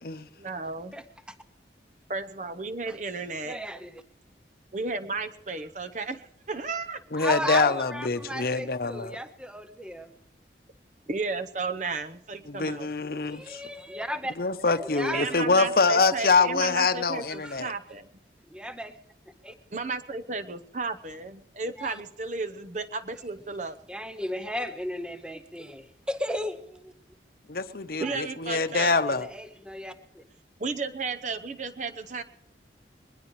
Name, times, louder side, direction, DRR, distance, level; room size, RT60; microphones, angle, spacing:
voice 1, 0.4-0.9 2.1-3.6 4.7-7.0 11.1-12.9 15.1-18.1 19.7-23.8 28.0-29.0 30.6-32.2, right 3 dB, 45° right, 8 dB, 0.8 m, -33 dB
voice 2, 3.5-4.0 7.2-10.1 13.2-14.4 14.7-15.4 17.3-17.7 18.4-18.9 19.4-19.5 21.8-22.0 23.9-26.9 28.0-28.1 28.9-30.2, equal, 5° right, 9 dB, 0.6 m, -35 dB
voice 3, 7.1-9.2 12.5-13.6 14.4-17.7 27.5-29.3, left 4 dB, 55° left, 10 dB, 0.8 m, -25 dB
21.5 x 21.0 x 3.2 m, 0.82 s
head